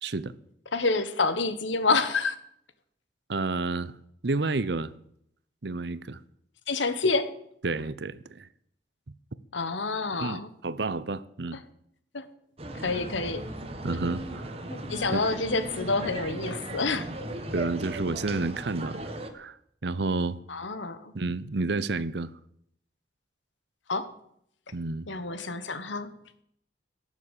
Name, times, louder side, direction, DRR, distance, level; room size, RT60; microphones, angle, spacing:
voice 1, 0.0-0.3 3.3-3.9 4.2-4.9 5.6-6.2 7.6-8.5 10.1-11.6 13.8-14.5 15.1-15.2 17.5-19.6 19.8-20.4 21.1-22.3 24.7-25.1, right 3 dB, 65° right, 0.7 m, -30 dB
voice 2, 0.7-2.4 6.7-7.3 9.5-10.5 12.1-12.3 12.8-13.4 14.7-17.1 20.5-21.1 23.9-24.1 25.1-26.1, left 3 dB, 85° left, 1.4 m, -28 dB
sound 1, 12.6-19.3, right 1 dB, 30° right, 1.5 m, -37 dB
17.5 x 7.3 x 8.2 m
head